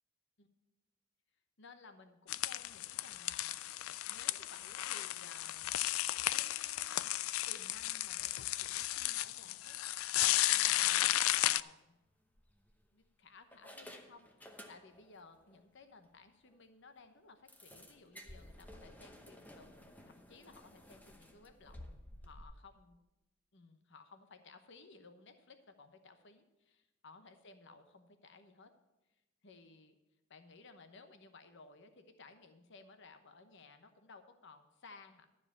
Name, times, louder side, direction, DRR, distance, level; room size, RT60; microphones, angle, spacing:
voice 1, 1.6-5.7 6.2-7.1 7.5-12.0 12.9-22.0 22.2-23.0 23.5-28.7 29.4-29.9 30.3-35.3, left 4 dB, 60° left, 8 dB, 0.9 m, -58 dB
sound 1, 2.3-11.6, left 15 dB, 80° left, 0.3 m, -34 dB
sound 2, 11.5-11.7 12.4-13.0 13.5-15.2 15.5-15.6 16.0-16.1 16.5-16.6 17.5-22.4, left 1 dB, 10° left, 0.8 m, -54 dB
12.0 x 4.9 x 8.3 m, 1.0 s
head